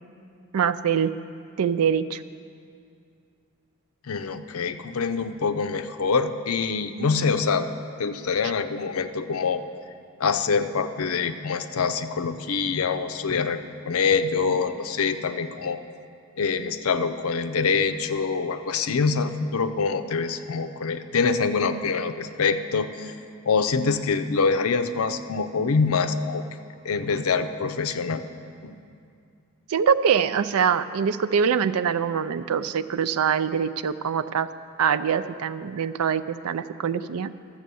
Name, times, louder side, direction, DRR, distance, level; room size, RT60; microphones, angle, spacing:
voice 1, 0.5-1.1 1.6-2.2 29.7-34.5 34.8-37.3, right 7 dB, 85° right, 13 dB, 0.4 m, -24 dB
voice 2, 4.1-7.7 8.0-9.6 10.2-13.6 13.9-15.8 16.4-23.1 23.5-26.5 26.8-28.2 28.6-28.7, left 5 dB, 75° left, 9 dB, 0.6 m, -25 dB
12.5 x 7.4 x 6.9 m, 2.4 s
head